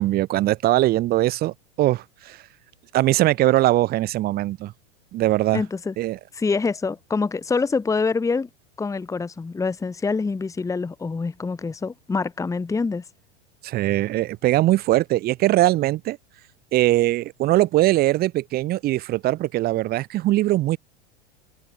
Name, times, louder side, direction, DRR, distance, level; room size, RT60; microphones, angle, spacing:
voice 1, 0.0-2.4 2.9-4.7 5.1-5.6 6.0-6.2 13.6-16.2 16.7-20.8, right 16 dB, 25° right, 0.6 m, -21 dB
voice 2, 5.5-5.9 6.3-8.5 8.8-13.0, left 4 dB, 10° left, 1.3 m, -25 dB
open air
hypercardioid pair, 120°, 35 cm